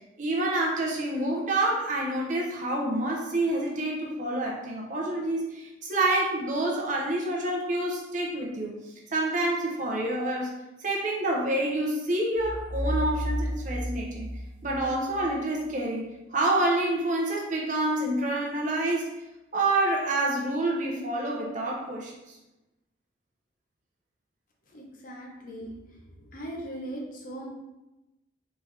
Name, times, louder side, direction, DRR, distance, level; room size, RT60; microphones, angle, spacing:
voice 1, 0.2-8.7 9.1-10.5 10.8-14.3 14.6-19.1 19.5-22.1, right 2 dB, 40° right, -2 dB, 0.8 m, -27 dB
sound 1, 12.4-15.2, equal, 65° right, 1.0 m, -32 dB
voice 2, 24.7-25.7 26.2-27.5, right 1 dB, 45° left, -1 dB, 0.7 m, -39 dB
4.2 x 3.4 x 3.2 m, 0.99 s
head